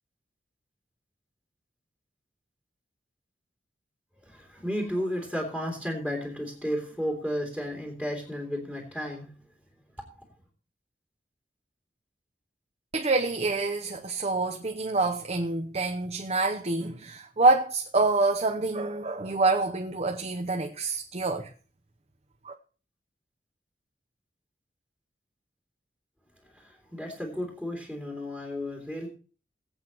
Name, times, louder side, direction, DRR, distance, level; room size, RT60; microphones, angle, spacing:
voice 1, 4.2-9.3 26.5-29.1, equal, 5° left, 2.7 m, -33 dB
voice 2, 12.9-21.5 22.4-22.5, right 3 dB, 40° right, 0.8 m, -26 dB
21.0 x 8.3 x 3.0 m
head